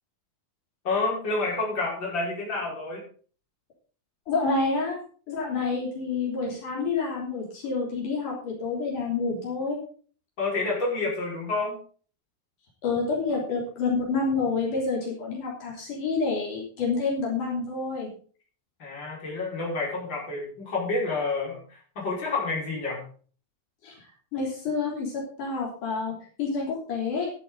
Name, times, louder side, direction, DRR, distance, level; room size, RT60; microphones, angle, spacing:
voice 1, 0.8-3.0 10.4-11.8 18.8-23.0, left 3 dB, 35° left, -3 dB, 5.7 m, -29 dB
voice 2, 4.3-5.0 5.3-9.8 12.8-18.1 23.8-23.9 24.3-27.3, left 4 dB, 70° left, -3 dB, 4.9 m, -28 dB
13.0 x 11.5 x 3.9 m, 0.42 s
omnidirectional pair, 3.8 m